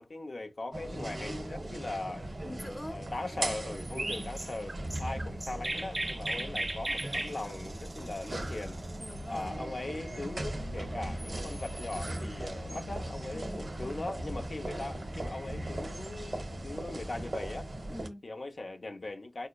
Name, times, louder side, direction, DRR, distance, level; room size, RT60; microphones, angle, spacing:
voice 1, 0.0-2.3 2.9-8.8 9.3-17.7 18.2-19.5, left 2 dB, 80° left, 0.5 m, -40 dB
sound 1, 0.7-18.1, right 1 dB, 75° right, 0.8 m, -39 dB
voice 2, 2.4-3.0 4.0-4.3 5.1-5.4 6.3-6.6 9.0-9.6 13.3-13.7 17.9-18.2, left 1 dB, 25° left, 0.5 m, -44 dB
Chirp tweet, 4.0-9.1, right 1 dB, 40° right, 0.3 m, -37 dB
sound 2, 9.1-17.6, left 2 dB, 55° left, 0.9 m, -49 dB
4.2 x 2.8 x 2.2 m
wide cardioid pair, 55°, 0 cm